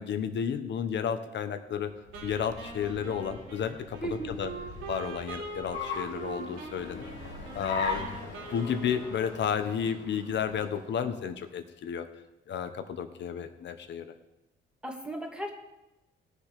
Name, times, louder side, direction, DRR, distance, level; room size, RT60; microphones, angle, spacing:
voice 1, 0.0-1.9 2.2-4.5 4.9-7.0 7.5-12.0 12.5-14.1, left 7 dB, 65° left, 9 dB, 1.3 m, -32 dB
Car, 1.9-11.3, left 4 dB, 85° left, 3.1 m, -41 dB
Wind instrument woodwind instrument, 2.1-10.0, right 4 dB, 90° right, 3.3 m, -43 dB
voice 2, 4.0-4.4 14.8-15.5, right 2 dB, 5° right, 1 dB, 2.3 m, -36 dB
18.0 x 6.7 x 5.1 m, 0.98 s
cardioid pair, 90°, 20 cm